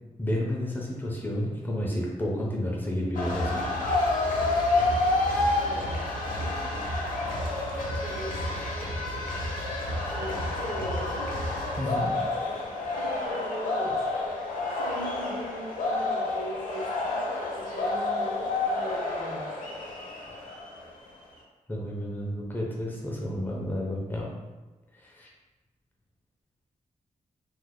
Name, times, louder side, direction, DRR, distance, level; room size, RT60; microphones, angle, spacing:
voice 1, 0.2-3.6 11.8-12.1 21.7-24.3 25.0-25.3, left 1 dB, 15° left, -3 dB, 0.5 m, -31 dB
sound 1, 3.1-20.9, left 2 dB, 85° left, 0.7 m, -29 dB
voice 2, 5.6-6.6 8.0-9.2 10.1-11.3 13.0-14.0 14.8-17.2 17.6-19.5, equal, 70° right, -5 dB, 0.9 m, -39 dB
3.1 x 2.0 x 3.5 m, 1.1 s
wide cardioid pair, 170°, 13 cm